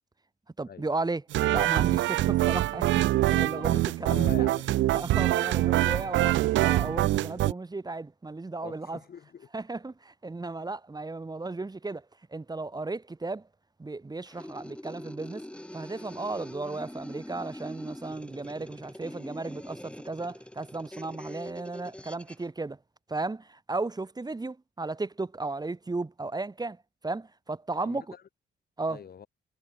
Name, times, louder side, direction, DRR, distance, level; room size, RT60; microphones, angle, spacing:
voice 1, 0.6-1.2 1.5-4.3 4.9-9.0 9.5-12.0 12.3-13.5 13.8-15.4 15.7-22.8 23.1-26.8 27.0-28.0 28.8-29.0, right 3 dB, 20° right, 2.4 m, -35 dB
sound 1, 1.3-7.5, right 15 dB, 70° right, 0.4 m, -24 dB
voice 2, 3.3-4.7 4.9-5.4 8.6-9.5 12.7-12.8 27.8-28.2 28.9-29.3, left 7 dB, 50° left, 3.8 m, -44 dB
sound 2, 14.3-22.5, left 1 dB, 5° left, 6.0 m, -44 dB
cardioid pair, 90°, 20 cm